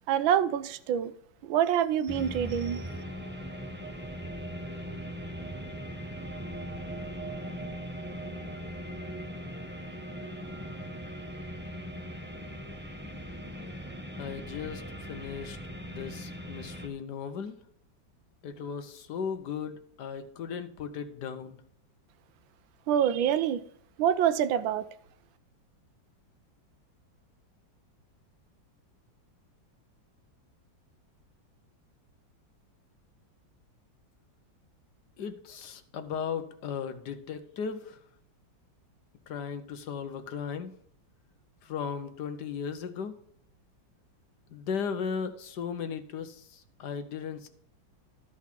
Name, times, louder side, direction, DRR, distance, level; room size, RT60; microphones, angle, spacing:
voice 1, 0.1-1.1 1.4-2.8 22.9-23.6 24.0-24.9, right 9 dB, 90° right, 1.4 m, -26 dB
sound 1, 2.1-16.9, equal, 15° right, 0.4 m, -39 dB
voice 2, 14.2-14.8 15.1-15.6 15.9-17.5 18.4-21.6 35.2-38.0 39.3-40.7 41.6-43.1 44.5-47.5, left 6 dB, 65° left, 1.4 m, -36 dB
13.0 x 4.8 x 5.9 m
omnidirectional pair, 2.1 m